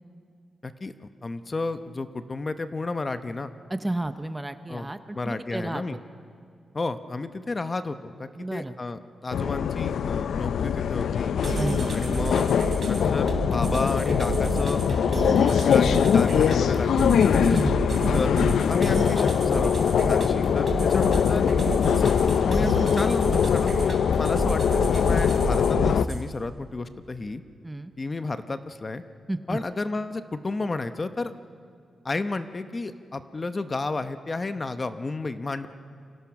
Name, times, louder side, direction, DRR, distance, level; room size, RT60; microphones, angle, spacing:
voice 1, 0.6-0.9 1.2-3.5 4.7-6.0 6.7-11.3 11.9-12.5 12.9-17.5 18.1-18.3 18.7-21.5 21.9-27.4 28.0-29.0 29.5-31.3 32.0-35.7, left 3 dB, 25° left, 10 dB, 0.8 m, -32 dB
voice 2, 3.7-6.0 8.4-8.7 11.6-12.2 17.5-17.7 27.6-27.9 29.3-29.6, right 1 dB, 10° right, 10 dB, 0.7 m, -31 dB
sound 1, 9.3-26.0, left 7 dB, 80° left, 0.6 m, -22 dB
sound 2, 11.4-26.2, right 2 dB, 40° right, 3.3 m, -31 dB
29.0 x 24.5 x 6.0 m, 2.3 s
wide cardioid pair, 160°, 0 cm